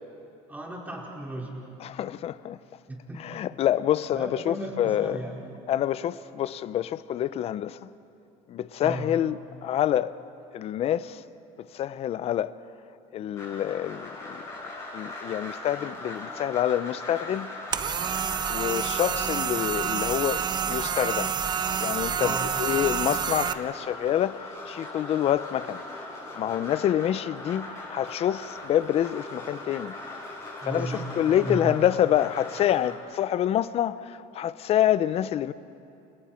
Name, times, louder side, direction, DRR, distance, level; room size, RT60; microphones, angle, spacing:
voice 1, 0.5-1.5 2.9-3.2 4.1-5.3 8.8-9.1 22.2-22.4 30.6-31.8, right 1 dB, 10° right, 5.1 m, -35 dB
voice 2, 1.8-2.6 3.2-5.2 5.7-7.9 8.5-10.1 10.5-11.2 11.7-12.5 13.1-14.4 14.9-17.5 18.5-21.3 21.8-25.8 26.3-29.9 30.6-35.5, left 11 dB, 40° left, 0.7 m, -27 dB
sound 1, 13.4-32.9, left 2 dB, 20° left, 7.5 m, -40 dB
sound 2, 17.7-23.5, right 8 dB, 30° right, 0.7 m, -28 dB
29.5 x 29.0 x 4.4 m
cardioid pair, 130°, 15 cm